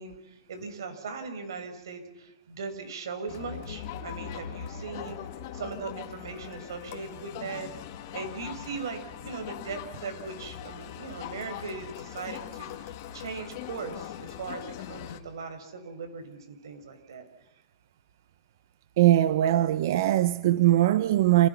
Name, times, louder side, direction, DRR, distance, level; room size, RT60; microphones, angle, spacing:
voice 1, 0.0-5.2 5.5-7.7 8.1-17.2, right 4 dB, 85° right, 6.6 m, -39 dB
Crowd, 3.3-15.2, left 10 dB, 40° left, 2.4 m, -41 dB
voice 2, 19.0-21.5, right 14 dB, 50° right, 0.9 m, -21 dB
29.5 x 28.5 x 6.0 m
supercardioid pair, 175°, 2 cm